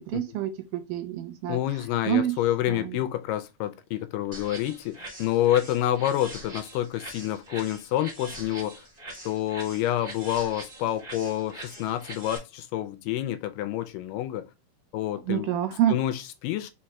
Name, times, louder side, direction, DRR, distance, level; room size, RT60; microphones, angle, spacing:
voice 1, 0.0-1.6 2.1-2.3 2.7-3.0 15.3-16.0, right 11 dB, 80° right, 2.0 m, -27 dB
voice 2, 1.5-8.7 9.3-14.5 14.9-15.5 15.9-16.7, left 13 dB, 80° left, 2.1 m, -28 dB
sound 1, 4.3-12.4, right 1 dB, 20° right, 1.1 m, -43 dB
4.6 x 4.2 x 2.2 m
omnidirectional pair, 3.9 m